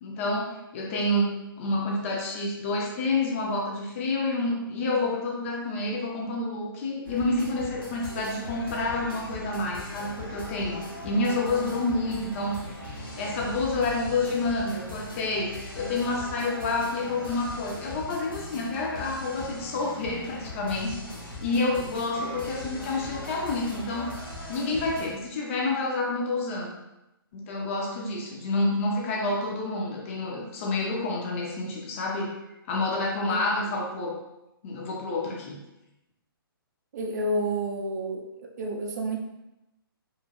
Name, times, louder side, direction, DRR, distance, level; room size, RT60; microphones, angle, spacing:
voice 1, 0.0-21.0 21.4-24.1 24.5-26.7 27.3-32.3 32.7-34.2 34.6-35.6, left 2 dB, 35° left, -1 dB, 0.5 m, -29 dB
sound 1, 7.1-25.2, left 1 dB, 70° left, 1.0 m, -40 dB
voice 2, 36.9-39.2, right 1 dB, 45° right, 1 dB, 0.4 m, -30 dB
3.0 x 2.5 x 2.4 m, 0.94 s
figure-of-eight pair, 130°, 13 cm